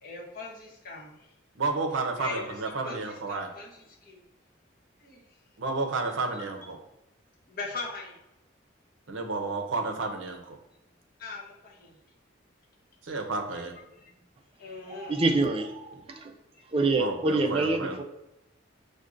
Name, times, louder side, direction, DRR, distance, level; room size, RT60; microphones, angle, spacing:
voice 1, 0.0-1.3 2.0-4.2 5.0-5.4 6.1-6.4 7.5-8.2 11.2-12.0 13.7-14.2 14.6-15.2 16.5-16.7, left 3 dB, 45° left, -2 dB, 0.8 m, -41 dB
voice 2, 1.6-3.5 5.6-6.8 9.1-10.6 13.0-13.7 15.9-16.0 17.0-18.0, right 3 dB, 70° right, 4 dB, 0.6 m, -31 dB
voice 3, 14.9-16.3 16.7-18.0, right 3 dB, 25° right, 4 dB, 0.3 m, -26 dB
6.1 x 2.2 x 2.5 m, 0.89 s
head